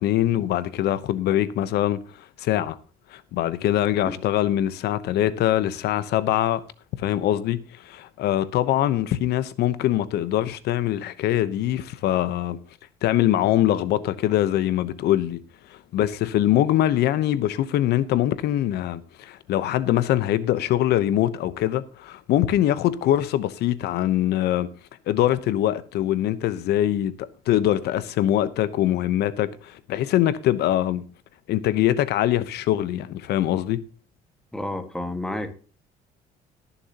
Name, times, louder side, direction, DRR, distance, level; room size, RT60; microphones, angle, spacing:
voice 1, 0.0-2.0 2.4-2.8 3.1-6.6 7.0-12.6 13.0-15.4 15.7-24.7 25.1-31.0 31.5-33.8, left 12 dB, 75° left, 0.9 m, -23 dB
voice 2, 34.5-35.5, left 1 dB, 5° left, 1.6 m, -30 dB
21.0 x 7.1 x 2.9 m
cardioid pair, 110°, 17 cm